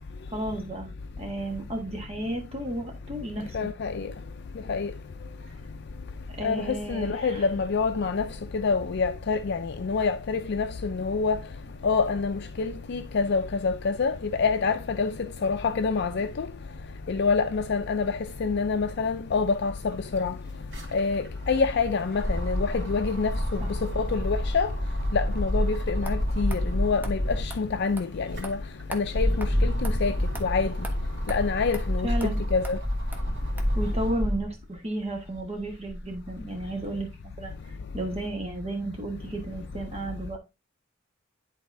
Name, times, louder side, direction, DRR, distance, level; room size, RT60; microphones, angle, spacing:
voice 1, 0.3-3.7 5.4-5.5 6.4-7.4 23.6-23.7 32.0-32.4 33.7-40.4, right 1 dB, 30° right, 1.4 m, -33 dB
voice 2, 3.5-4.1 4.7-4.9 6.4-8.3 8.5-11.4 11.8-15.1 15.4-16.5 17.1-20.4 20.9-23.6 24.0-24.7 25.1-28.6 28.9-30.1 30.4-30.7 31.3-32.8, left 4 dB, 55° left, 0.5 m, -27 dB
sound 1, 19.9-27.6 28.1-34.6 35.1-36.2, equal, 60° right, 2.3 m, -29 dB
sound 2, 26.1-26.2 26.5-26.6 27.0-27.1 27.5-27.6 28.0-28.1 28.4-28.5 28.9-29.1 29.4-29.5 29.8-30.0 30.3-30.5 30.8-30.9 31.3-31.4 31.7-31.8 32.2-32.3 32.6-32.8 33.1-33.2 33.6-33.7, right 2 dB, 10° right, 1.0 m, -39 dB
10.5 x 4.0 x 2.7 m
head